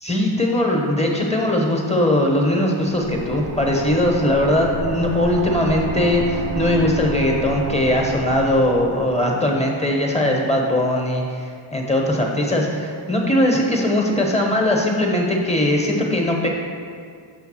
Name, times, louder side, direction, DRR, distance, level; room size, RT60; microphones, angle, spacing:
voice 1, 0.0-16.5, left 1 dB, 15° left, -1 dB, 0.9 m, -20 dB
sound 1, 2.9-9.3, right 4 dB, 55° right, 0.7 m, -30 dB
7.0 x 3.4 x 6.2 m, 2.2 s
wide cardioid pair, 100°, 48 cm